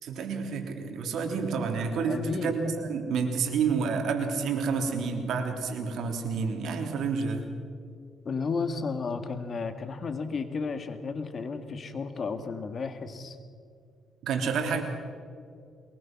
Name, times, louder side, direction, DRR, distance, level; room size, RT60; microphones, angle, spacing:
voice 1, 0.0-7.4 14.2-14.8, right 5 dB, 75° right, 4 dB, 3.3 m, -29 dB
voice 2, 2.0-2.5 8.2-13.4, left 4 dB, 45° left, 8 dB, 1.9 m, -33 dB
22.5 x 20.5 x 6.1 m, 2.3 s
cardioid pair, 90°, 0 cm